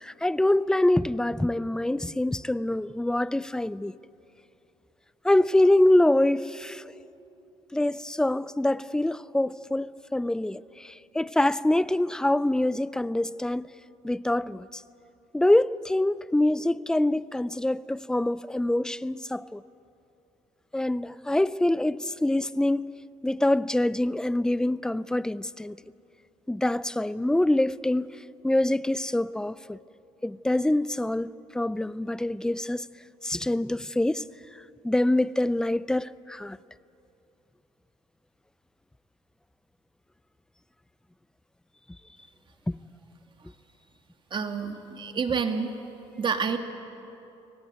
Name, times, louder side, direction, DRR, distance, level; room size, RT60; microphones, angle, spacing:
voice 1, 0.0-3.9 5.2-6.8 7.7-13.7 14.0-14.8 15.3-19.6 20.7-22.9 23.2-25.8 26.5-28.1 28.4-29.8 30.2-32.9 33.2-34.2 34.8-36.6, left 1 dB, 5° left, 0.5 m, -25 dB
voice 2, 44.3-45.7 46.2-46.6, right 6 dB, 40° right, 2.1 m, -28 dB
24.0 x 18.0 x 9.4 m
supercardioid pair, 85°, 12 cm